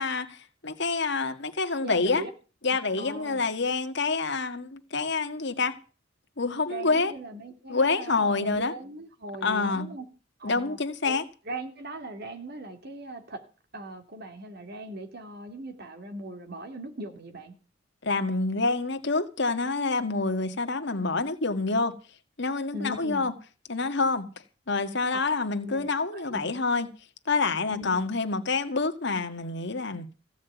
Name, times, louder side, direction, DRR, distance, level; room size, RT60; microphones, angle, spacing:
voice 1, 0.0-2.2 2.6-5.8 6.4-7.1 7.7-8.7 9.4-9.9 10.4-11.2 18.0-21.9 22.4-23.3 23.7-24.3 24.7-26.9 27.3-30.1, left 3 dB, 65° left, 2.0 m, -27 dB
voice 2, 1.8-2.3 3.0-3.4 6.7-10.1 10.4-10.8 11.0-11.2 11.5-13.4 13.7-17.5 22.7-23.3 25.6-26.4 27.7-28.1, right 1 dB, 55° right, 2.9 m, -39 dB
16.0 x 6.3 x 9.3 m
head